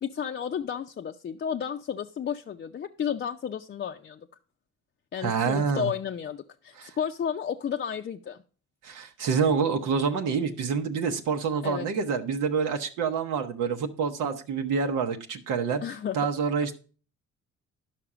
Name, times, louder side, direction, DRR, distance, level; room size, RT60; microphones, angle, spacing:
voice 1, 0.0-4.3 5.1-8.4 11.6-11.9 15.8-16.2, left 8 dB, 35° left, 4 dB, 0.5 m, -32 dB
voice 2, 5.2-5.9 6.8-6.9 8.8-15.8 16.1-16.7, right 6 dB, 85° right, 4 dB, 0.9 m, -27 dB
11.0 x 5.9 x 4.9 m, 0.38 s
cardioid pair, 90°, 30 cm